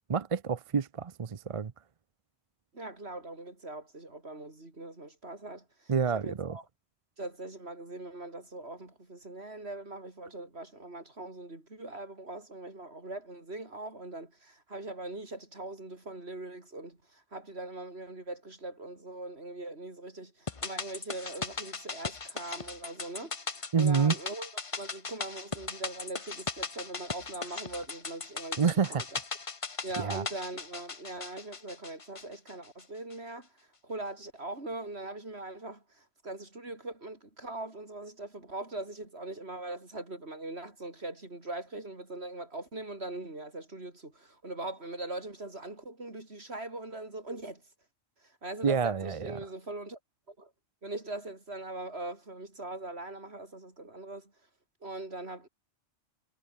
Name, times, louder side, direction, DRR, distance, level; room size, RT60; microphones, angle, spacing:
voice 1, 0.0-1.7 5.9-6.6 23.7-24.2 28.6-29.0 30.0-30.2 48.6-49.4, right 6 dB, 35° right, 0.6 m, -28 dB
voice 2, 2.7-6.6 7.2-29.2 29.8-47.6 48.2-50.0 50.3-50.5 50.8-54.3 54.8-55.5, right 2 dB, 65° right, 4.8 m, -41 dB
sound 1, 20.5-32.8 33.1-33.2, left 4 dB, 30° left, 1.0 m, -38 dB
omnidirectional pair, 1.1 m